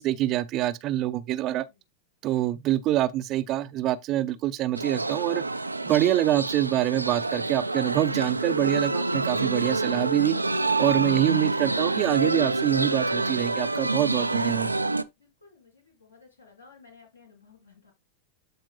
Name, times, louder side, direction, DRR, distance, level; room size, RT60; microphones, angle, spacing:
voice 1, 0.0-1.6 2.2-5.4 5.9-10.4 10.8-14.7, right 13 dB, 35° right, 0.6 m, -25 dB
sound 1, 4.7-15.0, right 2 dB, 85° right, 0.5 m, -27 dB
voice 2, 15.1-17.9, left 4 dB, 75° left, 5.3 m, -55 dB
13.0 x 4.5 x 2.3 m
figure-of-eight pair, 90°, 0 cm